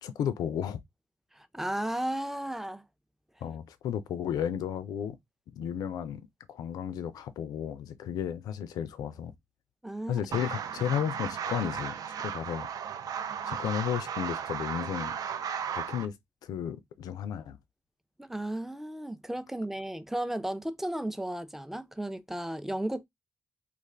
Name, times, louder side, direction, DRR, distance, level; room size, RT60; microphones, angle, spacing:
voice 1, 0.0-0.8 3.4-5.2 5.6-9.3 10.1-12.7 13.4-15.2 15.7-16.2 16.4-17.6, left 9 dB, 85° left, 0.4 m, -33 dB
voice 2, 1.3-2.8 9.8-10.2 18.2-23.0, right 1 dB, 5° right, 0.5 m, -34 dB
sound 1, 10.3-16.1, right 8 dB, 70° right, 0.4 m, -35 dB
2.4 x 2.4 x 3.2 m
supercardioid pair, 45°, 6 cm